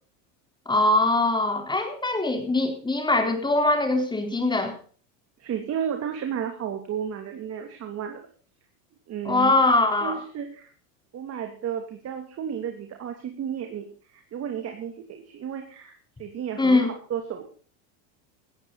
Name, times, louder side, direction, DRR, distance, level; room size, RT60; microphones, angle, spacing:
voice 1, 0.7-4.7 9.3-10.2 16.6-16.9, left 2 dB, 10° left, 5 dB, 4.2 m, -22 dB
voice 2, 5.4-8.2 9.1-9.5 10.0-10.7 11.1-17.4, right 8 dB, 35° right, 4 dB, 3.0 m, -33 dB
17.5 x 14.5 x 4.2 m, 0.42 s
supercardioid pair, 135°, 42 cm